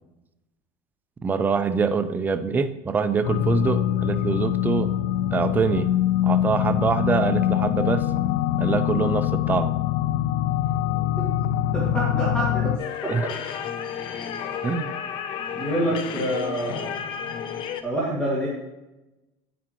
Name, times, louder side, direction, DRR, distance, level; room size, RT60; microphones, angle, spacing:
voice 1, 1.2-4.9 5.3-5.9 6.2-8.1 8.6-9.7 13.1-13.3 14.6-14.9, right 5 dB, 15° right, 9 dB, 0.5 m, -24 dB
sound 1, 3.2-12.8, left 12 dB, 85° left, 0.4 m, -24 dB
voice 2, 10.9-11.3 11.7-12.7 13.0-13.1 15.6-16.9 17.8-18.5, right 1 dB, 10° left, -6 dB, 2.0 m, -27 dB
sound 2, 12.8-17.8, left 8 dB, 50° left, 0.8 m, -32 dB
9.3 x 8.5 x 3.1 m, 0.99 s
cardioid pair, 145°, 11 cm